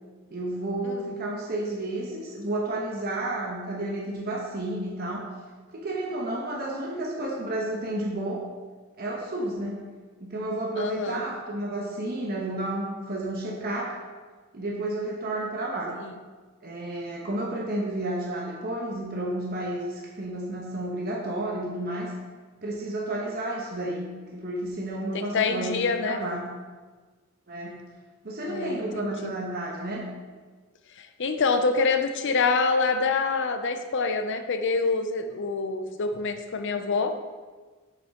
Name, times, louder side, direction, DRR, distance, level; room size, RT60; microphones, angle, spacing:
voice 1, 0.3-5.3 5.7-8.4 9.0-9.8 10.2-14.0 14.5-16.0 16.6-22.1 22.6-26.5 27.5-27.8 28.2-30.1, right 1 dB, 45° right, -2 dB, 1.1 m, -31 dB
voice 2, 10.8-11.2 25.1-26.2 28.4-29.3 31.0-37.1, left 4 dB, 55° left, 8 dB, 0.6 m, -26 dB
7.8 x 7.0 x 3.7 m, 1.4 s
head